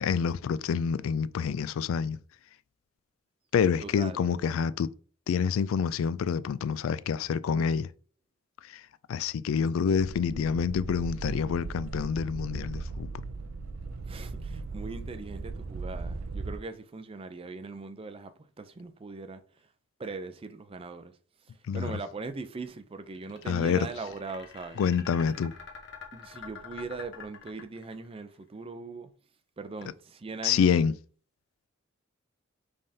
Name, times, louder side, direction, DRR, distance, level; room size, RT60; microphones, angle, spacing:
voice 1, 0.0-2.2 3.5-4.9 5.3-7.9 9.1-13.1 21.7-22.0 23.5-23.9 24.8-25.5 30.4-30.9, left 6 dB, 75° left, 0.3 m, -27 dB
voice 2, 3.8-4.3 14.1-18.3 18.6-19.4 20.0-21.1 21.7-24.8 26.1-29.1 29.6-30.7, right 3 dB, 25° right, 0.4 m, -40 dB
sound 1, 9.9-16.6, right 3 dB, 85° right, 0.4 m, -38 dB
sound 2, 23.1-28.2, left 6 dB, 60° left, 1.0 m, -46 dB
5.3 x 3.5 x 2.7 m
head